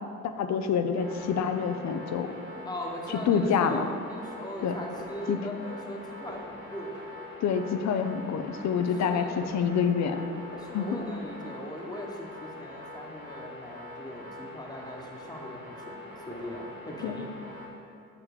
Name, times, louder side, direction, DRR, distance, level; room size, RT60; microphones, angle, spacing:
voice 1, 0.2-2.3 3.1-3.8 4.6-4.7 5.3-5.4 7.4-10.3 10.7-10.9 17.0-17.2, left 7 dB, 65° left, 8 dB, 0.6 m, -27 dB
sound 1, 1.0-17.7, left 1 dB, 80° right, 1.7 m, -43 dB
voice 2, 2.6-7.0 9.1-9.4 10.6-17.3, equal, 15° left, 0 dB, 1.2 m, -40 dB
7.0 x 5.1 x 4.9 m, 2.4 s
cardioid pair, 90°, 30 cm